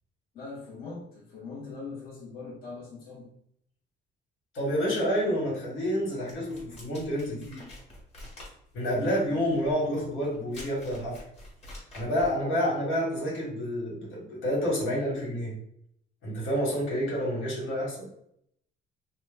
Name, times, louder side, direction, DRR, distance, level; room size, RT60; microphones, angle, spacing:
voice 1, 0.3-3.3, left 4 dB, 50° left, -5 dB, 0.9 m, -41 dB
voice 2, 4.5-7.6 8.7-11.2 11.9-15.5 16.2-18.1, equal, 85° left, -5 dB, 1.5 m, -29 dB
sound 1, 6.3-12.4, left 1 dB, 30° left, 1.3 m, -47 dB
2.9 x 2.1 x 3.4 m, 0.70 s
cardioid pair, 160°, 20 cm